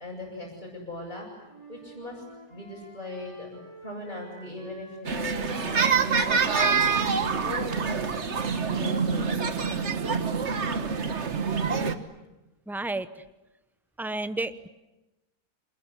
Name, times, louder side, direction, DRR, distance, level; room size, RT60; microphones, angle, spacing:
voice 1, 0.0-6.7 7.4-8.2 8.5-9.4, left 2 dB, 30° left, -6 dB, 8.1 m, -39 dB
Wind instrument woodwind instrument, 1.5-5.4 5.6-9.9, right 1 dB, 20° right, 5.1 m, -49 dB
sound 1, 5.0-11.9, right 5 dB, 50° right, 1.6 m, -26 dB
voice 2, 12.7-13.1 14.0-14.7, right 2 dB, ahead, 12 dB, 0.7 m, -31 dB
27.5 x 22.0 x 9.9 m, 1.0 s
omnidirectional pair, 1.6 m